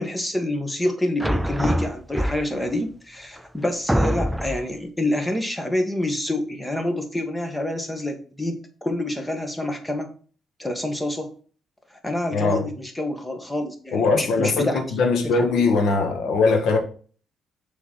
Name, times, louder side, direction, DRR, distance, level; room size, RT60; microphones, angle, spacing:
voice 1, 0.0-10.1 10.6-11.3 12.0-14.8 15.2-15.7, left 1 dB, 10° left, 1.6 m, -27 dB
sound 1, 1.2-2.7 3.4-3.5 3.9-4.7, equal, 5° right, 0.4 m, -24 dB
voice 2, 12.3-12.6 13.9-16.8, left 4 dB, 80° left, 1.6 m, -21 dB
6.9 x 4.0 x 4.6 m
cardioid pair, 90°, 0 cm